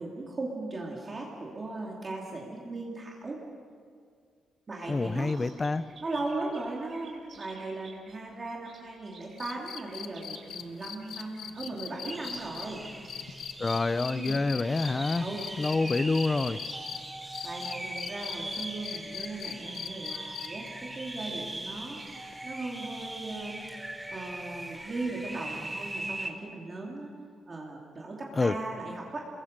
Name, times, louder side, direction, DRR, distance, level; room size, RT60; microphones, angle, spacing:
voice 1, 0.0-3.4 4.7-5.4 6.0-12.8 14.1-14.4 15.2-15.5 17.4-22.0 22.4-23.6 24.1-27.1 27.5-29.3, right 2 dB, 25° right, -2 dB, 2.6 m, -38 dB
voice 2, 4.9-5.8 13.6-15.3 15.6-16.6 28.4-28.6, left 3 dB, 20° left, 13 dB, 0.5 m, -27 dB
sound 1, 4.9-22.2, right 4 dB, 40° right, 4.1 m, -55 dB
sound 2, 9.4-17.0 17.3-20.7 22.3-22.4, left 9 dB, 70° left, 0.9 m, -39 dB
sound 3, 12.1-26.3, right 1 dB, 10° right, 1.3 m, -40 dB
29.0 x 22.0 x 6.7 m, 2.1 s
cardioid pair, 180°, 0 cm